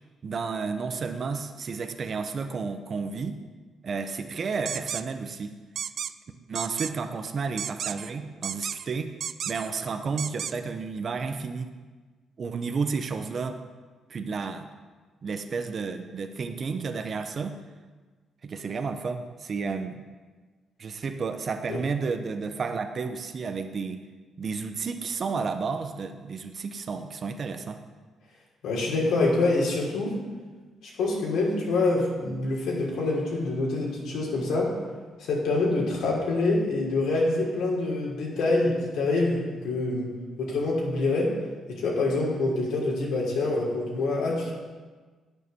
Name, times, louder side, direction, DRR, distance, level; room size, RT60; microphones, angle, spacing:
voice 1, 0.2-3.4 3.8-5.5 6.5-9.1 9.5-11.7 12.4-13.6 14.1-14.7 15.2-17.6 18.4-20.0 20.8-24.0 24.4-27.8, right 5 dB, 45° right, 7 dB, 0.7 m, -32 dB
sound 1, 4.7-5.0 5.8-6.1 6.5-6.9 7.6-8.1 8.4-8.9 9.2-9.7 10.2-10.5, right 8 dB, 60° right, 0.4 m, -32 dB
voice 2, 28.6-30.1 31.0-34.7 35.2-40.1 40.4-41.3 41.7-44.5, left 2 dB, 80° left, -3 dB, 3.1 m, -26 dB
9.5 x 6.5 x 6.8 m, 1.4 s
cardioid pair, 90°, 0 cm